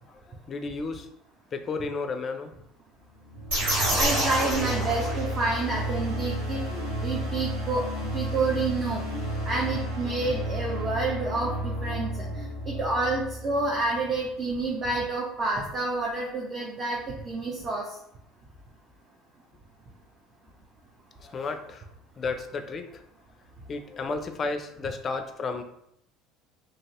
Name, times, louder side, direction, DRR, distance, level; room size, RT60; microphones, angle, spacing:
voice 1, 0.1-1.1 1.5-2.5 21.2-21.8 22.2-22.9 23.7-25.6, left 4 dB, 40° left, 8 dB, 0.4 m, -32 dB
sound 1, 3.2-14.2, equal, 90° right, 1.0 m, -33 dB
sound 2, 3.5-5.6, right 1 dB, 70° right, 1.5 m, -27 dB
voice 2, 3.9-17.8, right 3 dB, 35° right, -3 dB, 0.7 m, -29 dB
2.8 x 2.8 x 2.8 m, 0.77 s
hypercardioid pair, 70°, 0 cm